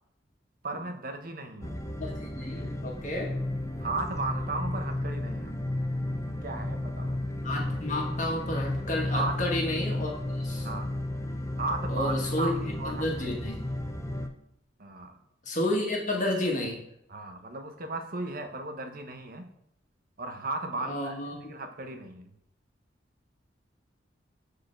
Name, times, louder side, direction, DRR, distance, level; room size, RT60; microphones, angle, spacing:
voice 1, 0.6-1.8 3.8-5.7 6.4-7.1 9.1-9.5 10.6-10.9 11.6-13.4 14.8-15.2 17.1-19.5 20.2-21.2 21.4-22.3, right 3 dB, 50° right, 6 dB, 1.1 m, -36 dB
sound 1, 1.6-14.3, left 1 dB, 15° left, 0.7 m, -33 dB
voice 2, 2.0-3.3 7.4-10.1 10.4-10.7 11.9-13.6 15.4-16.8 20.8-21.4, left 1 dB, 45° left, -1 dB, 1.7 m, -31 dB
6.7 x 4.8 x 6.5 m, 0.76 s
head